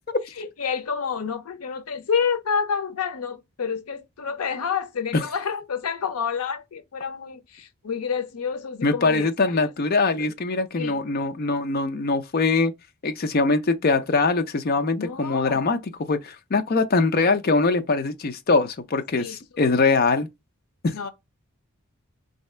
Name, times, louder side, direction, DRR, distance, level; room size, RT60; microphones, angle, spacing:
voice 1, 0.4-10.3 10.7-11.0 15.0-15.6 19.1-19.4 20.9-21.1, left 6 dB, 85° left, 0.6 m, -29 dB
voice 2, 8.8-12.7 13.0-20.3 20.8-21.1, left 3 dB, 40° left, 0.5 m, -22 dB
4.0 x 2.7 x 3.2 m
head